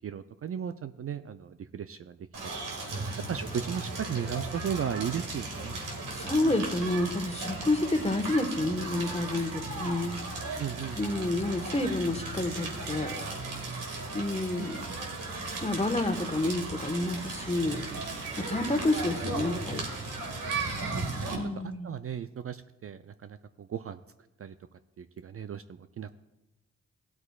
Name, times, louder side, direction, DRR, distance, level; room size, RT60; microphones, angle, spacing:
voice 1, 0.0-2.6 3.3-5.8 10.6-11.0 20.7-24.0 24.4-24.5 25.0-26.1, right 8 dB, 45° right, 11 dB, 0.4 m, -36 dB
Crackle, 2.3-21.3, right 3 dB, 70° right, 2.0 m, -36 dB
voice 2, 6.1-10.2 11.0-13.1 14.1-14.8 15.6-17.8 18.5-19.9 21.3-21.9, left 2 dB, 20° left, 7 dB, 1.3 m, -29 dB
16.5 x 8.0 x 2.4 m, 0.97 s
supercardioid pair, 45°, 33 cm